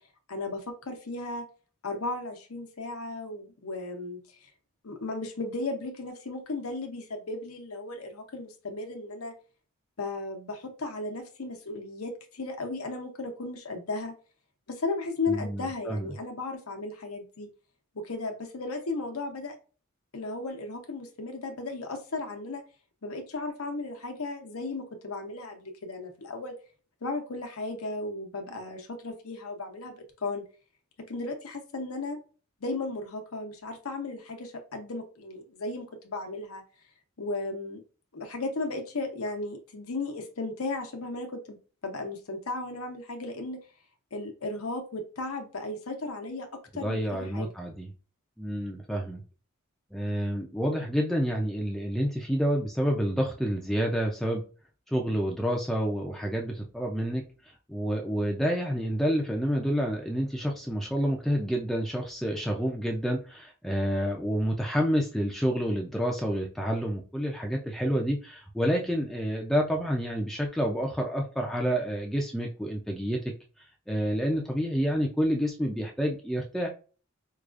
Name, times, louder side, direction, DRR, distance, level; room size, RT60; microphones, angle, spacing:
voice 1, 0.3-1.4 1.8-4.2 4.8-9.3 10.0-14.1 14.7-17.5 17.9-19.5 20.1-22.6 23.0-26.5 27.0-30.4 31.1-32.2 32.6-36.6 37.2-37.8 38.1-41.6 41.8-43.6 44.1-46.5 46.7-47.5, left 3 dB, 90° left, 4 dB, 0.8 m, -35 dB
voice 2, 15.3-16.1 46.7-47.9 48.4-49.2 49.9-54.4 54.9-57.2 57.7-73.3 73.9-76.7, equal, ahead, 0 dB, 0.4 m, -28 dB
4.7 x 2.4 x 2.4 m, 0.36 s
head